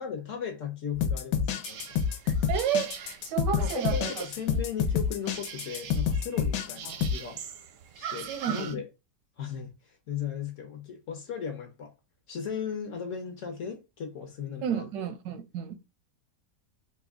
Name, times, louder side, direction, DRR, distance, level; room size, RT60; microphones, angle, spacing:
voice 1, 0.0-2.0 3.6-7.4 7.9-8.9 9.4-11.9 12.3-14.9, left 7 dB, 60° left, 0.9 m, -37 dB
sound 1, 0.9-7.1, left 7 dB, 80° left, 1.2 m, -28 dB
sound 2, 1.6-8.7, right 8 dB, 70° right, 0.8 m, -43 dB
voice 2, 2.2-4.3 6.8-7.0 8.3-8.8 14.6-15.8, right 9 dB, 85° right, 1.3 m, -32 dB
3.5 x 2.2 x 3.4 m
omnidirectional pair, 1.8 m